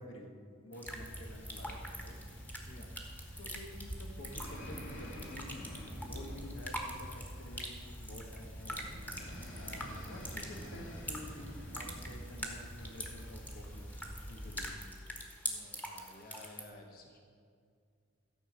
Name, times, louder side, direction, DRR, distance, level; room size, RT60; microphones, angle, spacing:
voice 1, 0.0-2.2 3.4-5.6 6.0-8.9 9.5-13.9 14.3-14.7, left 1 dB, 90° left, 2 dB, 1.7 m, -50 dB
sound 1, 0.7-16.6, equal, 10° left, 1.3 m, -45 dB
sound 2, 0.8-14.7, equal, 70° left, 2.2 m, -46 dB
voice 2, 15.4-17.2, left 1 dB, 45° left, 2 dB, 1.2 m, -54 dB
13.5 x 5.6 x 7.8 m, 2.3 s
head